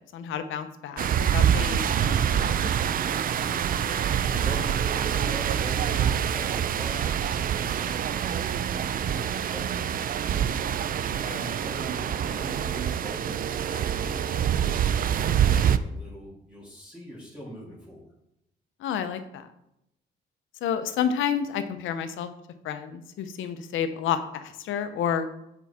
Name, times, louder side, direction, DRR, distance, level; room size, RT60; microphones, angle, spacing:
voice 1, 0.0-2.7 18.8-19.5 20.6-22.3 22.6-25.3, left 8 dB, 80° left, 9 dB, 0.8 m, -30 dB
sound 1, 1.0-15.8, right 9 dB, 45° right, 0.4 m, -26 dB
voice 2, 3.3-9.7 10.9-18.1, equal, 5° right, -8 dB, 2.3 m, -42 dB
7.1 x 4.6 x 4.2 m, 0.80 s
cardioid pair, 90°, 20 cm